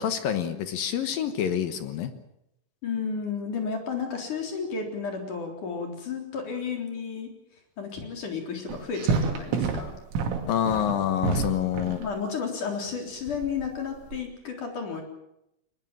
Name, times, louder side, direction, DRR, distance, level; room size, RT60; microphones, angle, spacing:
voice 1, 0.0-2.1 10.5-12.0, left 9 dB, 65° left, 10 dB, 2.4 m, -27 dB
voice 2, 2.8-7.3 7.8-9.9 12.0-15.0, left 5 dB, 45° left, 3 dB, 4.9 m, -32 dB
sound 1, 8.7-12.1 13.3-14.2, right 4 dB, 90° right, 4.8 m, -28 dB
22.0 x 21.0 x 7.5 m, 0.82 s
omnidirectional pair, 5.5 m